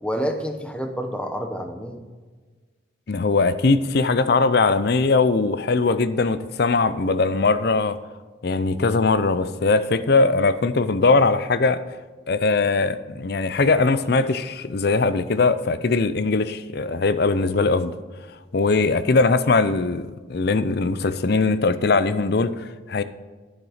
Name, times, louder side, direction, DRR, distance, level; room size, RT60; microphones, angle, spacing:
voice 1, 0.0-2.0, equal, 5° left, 5 dB, 0.9 m, -28 dB
voice 2, 3.1-8.0 8.4-11.8 12.3-17.9 18.5-23.0, left 3 dB, 55° left, 13 dB, 0.5 m, -20 dB
11.0 x 6.6 x 5.0 m, 1.4 s
head